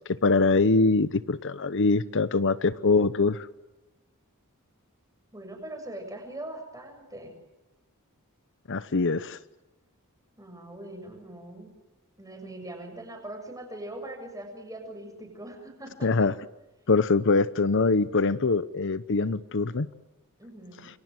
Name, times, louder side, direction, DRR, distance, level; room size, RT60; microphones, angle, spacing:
voice 1, 0.2-3.5 8.7-9.4 16.0-16.3 16.9-19.9, left 3 dB, 55° left, 15 dB, 0.9 m, -23 dB
voice 2, 5.3-7.3 10.4-11.7 12.2-16.3 20.4-20.9, right 1 dB, 15° right, 5 dB, 6.9 m, -41 dB
28.5 x 23.5 x 7.8 m, 1.0 s
head